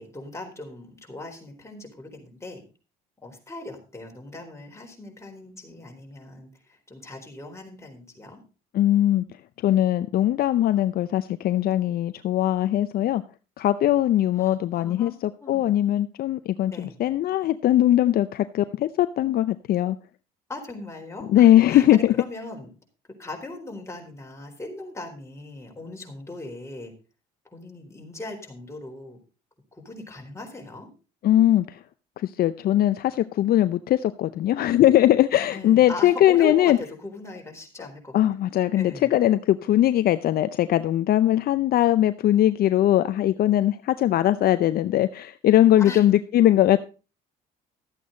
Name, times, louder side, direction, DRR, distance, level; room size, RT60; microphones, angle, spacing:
voice 1, 0.0-2.6 3.2-8.4 14.4-15.6 16.7-17.0 20.5-22.7 23.2-26.9 27.5-29.2 29.7-30.9 35.5-38.2 38.8-39.1 45.8-46.0, left 2 dB, 15° left, 4.1 m, -39 dB
voice 2, 8.7-9.2 9.6-13.2 13.6-15.1 15.5-20.0 21.3-22.1 31.2-31.6 32.2-36.8 38.1-46.8, left 13 dB, 55° left, 0.6 m, -20 dB
13.0 x 8.5 x 3.9 m
supercardioid pair, 75°, 18 cm